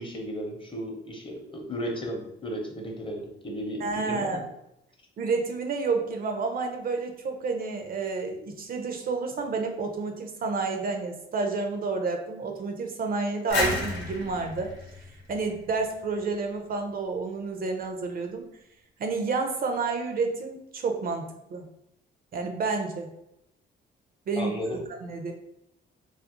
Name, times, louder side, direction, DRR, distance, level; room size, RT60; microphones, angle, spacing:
voice 1, 0.0-4.5 24.4-24.8, equal, 25° left, 0 dB, 0.7 m, -35 dB
voice 2, 3.8-4.4 5.2-14.7 15.3-18.4 19.0-21.7 22.3-23.1 24.3-24.5 25.0-25.3, right 4 dB, 45° right, 4 dB, 0.4 m, -30 dB
sound 1, 13.5-16.2, left 2 dB, 75° left, 0.8 m, -32 dB
2.4 x 2.0 x 2.8 m, 0.82 s
cardioid pair, 90°, 20 cm